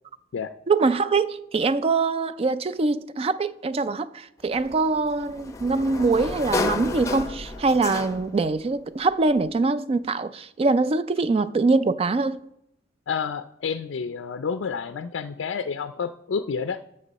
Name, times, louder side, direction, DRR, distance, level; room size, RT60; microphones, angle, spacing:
voice 1, 0.7-12.4, right 3 dB, 30° right, 0.4 m, -23 dB
Sliding door, 4.5-8.5, left 2 dB, 15° left, 0.7 m, -31 dB
voice 2, 13.1-16.8, left 6 dB, 80° left, 0.4 m, -29 dB
13.0 x 6.5 x 4.1 m
head